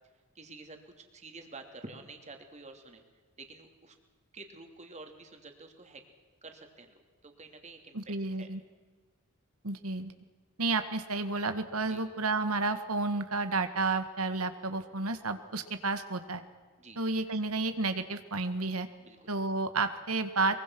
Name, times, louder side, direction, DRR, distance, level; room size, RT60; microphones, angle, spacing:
voice 1, 0.3-3.0 3.4-3.9 4.3-6.0 6.4-6.9 7.2-8.5 11.8-12.0 16.8-17.0 19.0-19.3, right 3 dB, 30° right, 5 dB, 2.9 m, -49 dB
voice 2, 7.9-8.6 9.6-10.1 10.6-16.4 16.9-18.9 19.3-20.6, right 3 dB, 85° right, 9 dB, 1.8 m, -31 dB
23.5 x 23.5 x 6.2 m, 1.4 s
head